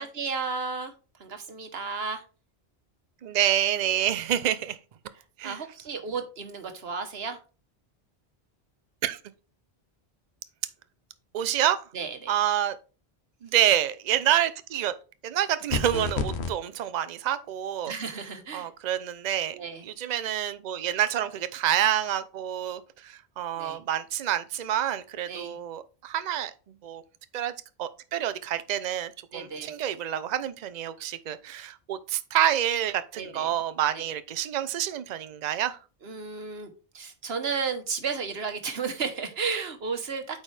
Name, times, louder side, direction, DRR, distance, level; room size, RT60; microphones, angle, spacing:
voice 1, 0.0-2.2 5.4-7.4 11.9-12.4 17.8-18.7 19.5-19.8 23.6-23.8 25.3-25.6 29.3-29.7 33.2-33.5 33.9-34.0 36.0-40.4, right 5 dB, 70° right, 1.4 m, -33 dB
voice 2, 3.2-4.8 5.4-5.6 9.0-9.2 11.3-11.8 12.3-12.8 13.4-14.9 15.2-17.9 18.5-19.6 19.8-26.5 26.8-27.0 27.3-27.5 27.8-35.8, right 11 dB, 50° right, 0.6 m, -27 dB
sound 1, 15.7-16.5, left 5 dB, 75° left, 1.2 m, -29 dB
8.5 x 4.8 x 3.3 m
omnidirectional pair, 1.1 m